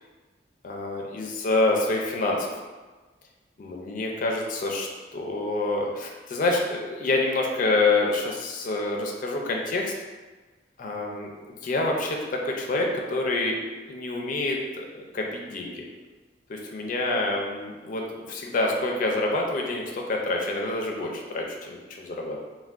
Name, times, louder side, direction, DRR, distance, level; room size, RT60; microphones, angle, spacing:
voice 1, 0.6-2.5 3.6-9.9 10.8-15.8 16.5-22.4, left 2 dB, 45° left, 0 dB, 0.4 m, -27 dB
3.4 x 2.1 x 2.4 m, 1.3 s
head